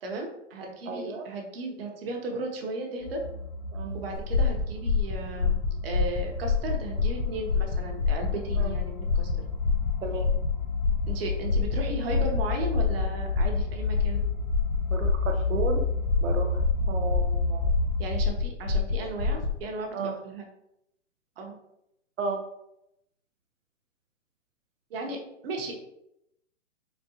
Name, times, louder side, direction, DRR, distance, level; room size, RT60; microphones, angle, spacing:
voice 1, 0.0-3.2 3.9-9.3 11.1-14.2 18.0-20.4 21.4-21.6 24.9-25.2 25.4-25.7, right 2 dB, 50° right, 1 dB, 1.0 m, -35 dB
voice 2, 0.9-1.3 3.7-4.0 8.6-8.7 10.0-10.3 14.9-15.8 16.2-16.6 16.9-17.7 19.3-19.4 19.9-20.1 22.2-22.4, right 4 dB, 85° right, 2 dB, 0.7 m, -33 dB
sound 1, 3.0-18.2, left 3 dB, 35° left, 0.5 m, -31 dB
sound 2, 4.1-19.6, left 4 dB, 85° left, 1.0 m, -27 dB
4.3 x 3.3 x 2.8 m, 0.82 s
hypercardioid pair, 150°, 38 cm